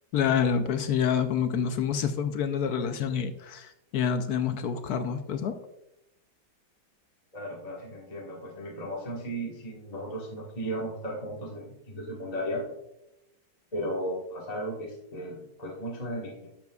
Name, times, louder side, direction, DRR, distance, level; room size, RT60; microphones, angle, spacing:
voice 1, 0.1-5.5, left 7 dB, 70° left, 8 dB, 0.9 m, -27 dB
voice 2, 7.3-12.6 13.7-16.5, equal, 20° left, -3 dB, 1.3 m, -35 dB
11.5 x 7.3 x 2.3 m, 0.87 s
omnidirectional pair, 2.2 m